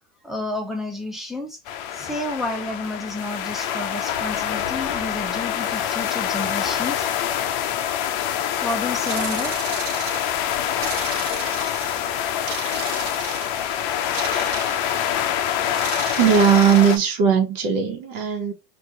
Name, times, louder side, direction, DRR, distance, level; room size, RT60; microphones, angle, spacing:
voice 1, 0.2-1.6 1.9-7.1 8.3-9.6 11.3-11.7, left 2 dB, ahead, 0.4 m, -31 dB
sound 1, 1.7-17.0, left 10 dB, 50° left, 0.5 m, -25 dB
sound 2, 9.1-10.4 10.8-12.0 12.5-13.7 14.1-15.1 15.7-17.1, right 12 dB, 80° right, 0.5 m, -35 dB
voice 2, 16.2-18.5, right 7 dB, 65° right, 1.1 m, -18 dB
2.9 x 2.5 x 3.4 m
supercardioid pair, 150°, 31 cm